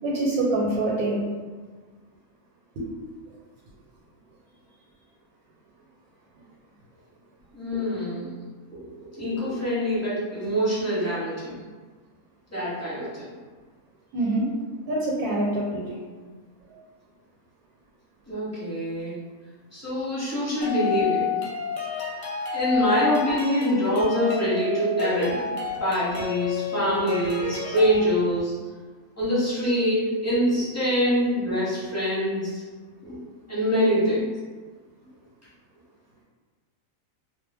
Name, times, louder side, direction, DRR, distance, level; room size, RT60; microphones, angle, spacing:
voice 1, 0.0-1.2 2.8-2.9 14.1-14.5 14.9-15.9 16.7-16.8 29.6-29.7 30.7-31.1 32.2-32.3, right 2 dB, 85° right, -4 dB, 1.1 m, -26 dB
voice 2, 7.5-8.4 9.2-11.6 12.5-13.3 18.3-19.1 19.7-21.3 22.5-25.5 25.8-28.5 29.2-32.6 33.0-33.2 33.5-34.3, equal, 15° left, -10 dB, 0.8 m, -25 dB
sound 1, 20.6-28.0, left 6 dB, 65° left, 0.9 m, -30 dB
2.3 x 2.1 x 3.3 m, 1.4 s
omnidirectional pair, 1.5 m